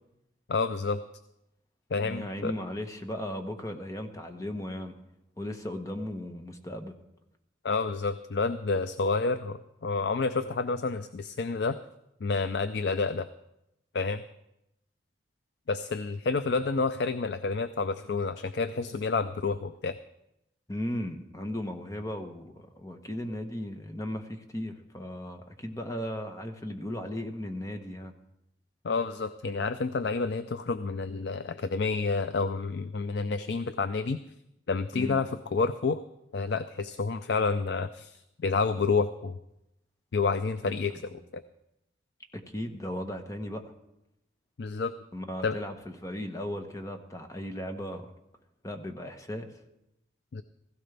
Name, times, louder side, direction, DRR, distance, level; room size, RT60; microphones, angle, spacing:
voice 1, 0.5-1.0 1.9-2.5 7.6-11.8 12.2-13.3 13.9-14.2 15.7-20.0 28.8-34.2 34.7-36.0 36.3-39.4 40.1-40.9 41.3-41.4 44.6-44.9 45.4-45.6 50.3-50.4, left 4 dB, 65° left, 12 dB, 0.4 m, -29 dB
voice 2, 2.0-4.9 5.4-6.9 20.7-28.1 34.9-35.2 40.6-40.7 42.3-43.7 45.1-48.1 48.6-49.5, left 1 dB, 15° left, 5 dB, 1.0 m, -36 dB
16.5 x 15.5 x 3.4 m, 0.86 s
head